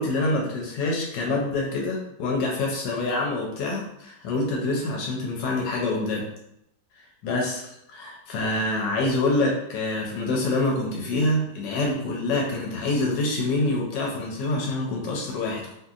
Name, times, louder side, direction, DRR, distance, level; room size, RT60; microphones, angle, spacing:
voice 1, 0.0-6.3 7.2-15.7, left 2 dB, 90° left, -1 dB, 1.3 m, -26 dB
2.8 x 2.7 x 2.4 m, 0.79 s
omnidirectional pair, 1.8 m